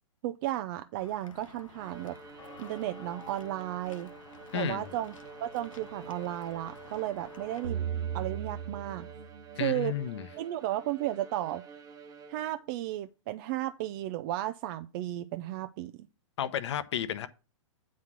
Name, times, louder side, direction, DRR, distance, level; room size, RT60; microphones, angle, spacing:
voice 1, 0.2-2.2 2.6-4.1 4.5-5.1 5.4-7.8 8.1-9.1 9.6-9.9 10.4-11.6 12.3-15.9, right 14 dB, 40° right, 0.5 m, -34 dB
Walk footsteps / Bell, 1.0-7.6, left 5 dB, 85° left, 1.0 m, -52 dB
Bowed string instrument, 1.7-12.8, right 5 dB, 20° right, 0.9 m, -49 dB
voice 2, 4.5-4.9 9.6-10.2 16.4-17.3, left 10 dB, 60° left, 0.9 m, -32 dB
sound 1, 7.6-10.9, right 8 dB, 70° right, 1.5 m, -37 dB
9.3 x 4.2 x 6.0 m
hypercardioid pair, 115°, 17 cm